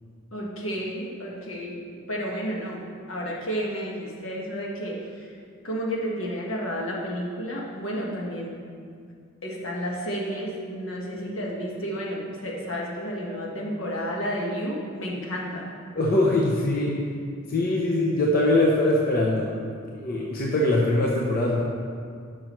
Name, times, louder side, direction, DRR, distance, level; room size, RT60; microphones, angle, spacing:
voice 1, 0.3-2.8 3.1-5.3 5.6-8.6 9.4-15.7, equal, 75° left, -3 dB, 1.5 m, -31 dB
voice 2, 15.9-17.0 17.5-19.6 19.9-21.6, left 1 dB, 45° left, -3 dB, 0.8 m, -22 dB
10.5 x 6.2 x 3.1 m, 2.2 s
head